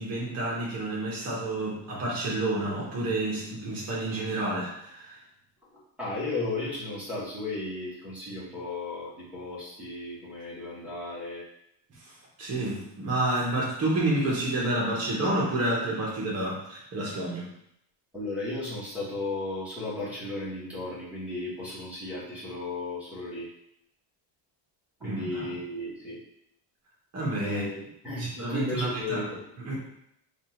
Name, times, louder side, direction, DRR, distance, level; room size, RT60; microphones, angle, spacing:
voice 1, 0.0-5.1 12.4-17.5 25.0-25.5 27.1-27.6 28.2-29.3 29.6-29.7, right 2 dB, 35° right, -4 dB, 1.0 m, -29 dB
voice 2, 6.0-11.4 18.1-23.5 25.0-26.2 27.4-29.4, left 2 dB, 5° right, -11 dB, 1.0 m, -35 dB
3.6 x 2.4 x 4.3 m, 0.77 s
cardioid pair, 175°, 46 cm